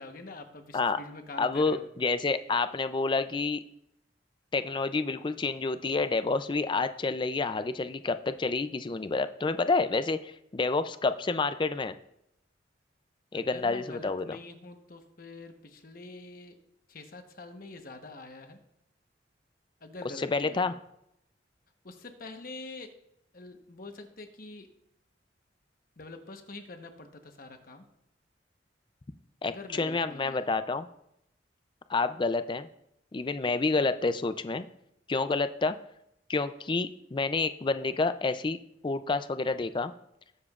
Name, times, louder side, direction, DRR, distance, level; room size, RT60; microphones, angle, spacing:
voice 1, 0.0-1.9 13.3-16.5 16.9-18.6 19.8-20.8 21.8-22.9 23.3-24.7 26.0-27.8 29.4-30.4 33.5-33.8, left 2 dB, 50° left, 5 dB, 1.1 m, -45 dB
voice 2, 1.4-3.6 4.5-11.9 13.3-14.2 20.2-20.7 29.4-30.9 31.9-32.7 33.1-34.7 35.1-35.8 36.3-38.6 38.8-39.9, left 3 dB, 25° left, 11 dB, 0.4 m, -29 dB
20.0 x 7.2 x 2.4 m, 0.80 s
head